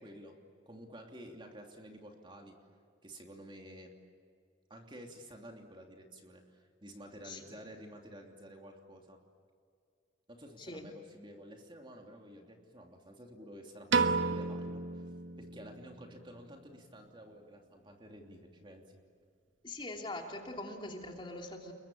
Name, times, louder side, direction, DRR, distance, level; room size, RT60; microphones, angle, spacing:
voice 1, 0.0-2.6 3.0-3.9 4.7-9.2 10.3-15.0 15.4-19.0, equal, 25° right, 2 dB, 3.0 m, -51 dB
voice 2, 7.2-7.6 10.6-10.8 19.6-21.7, left 2 dB, 25° left, 1 dB, 3.1 m, -43 dB
Piano, 13.9-16.2, right 4 dB, 80° right, 1.3 m, -32 dB
30.0 x 22.5 x 8.7 m, 2.3 s
head